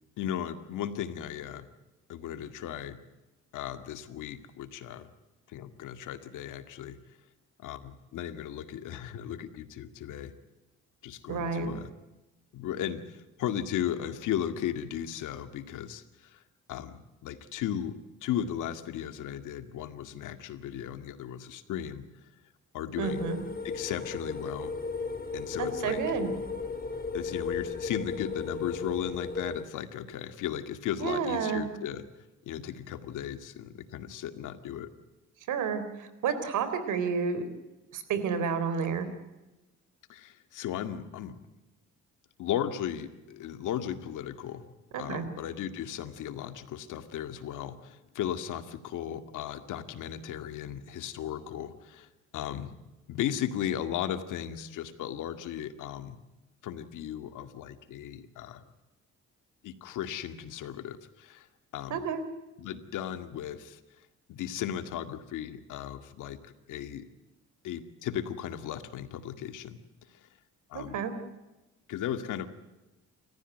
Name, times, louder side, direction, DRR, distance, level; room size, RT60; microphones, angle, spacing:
voice 1, 0.2-1.7 2.1-3.0 3.5-5.1 5.5-7.0 7.6-10.3 11.0-11.9 12.5-16.4 16.7-22.1 22.7-23.3 23.6-24.7 25.3-26.0 27.1-32.1 32.5-34.9 40.1-41.4 42.4-44.7 45.0-52.7 53.1-56.2 56.6-58.6 59.6-61.5 61.7-62.0 62.6-63.8 64.3-67.1 67.6-69.8 70.1-70.3 70.7-71.0 71.9-72.5, left 10 dB, 85° left, 9 dB, 2.1 m, -36 dB
voice 2, 11.3-11.7 23.0-23.4 25.6-26.3 31.0-31.7 35.5-37.4 37.9-39.1 44.9-45.3 61.9-62.2 70.7-71.1, right 6 dB, 80° right, 11 dB, 3.8 m, -30 dB
sound 1, 23.0-29.6, left 4 dB, 30° left, 3.2 m, -35 dB
29.0 x 14.5 x 9.2 m, 1.0 s
cardioid pair, 90°, 30 cm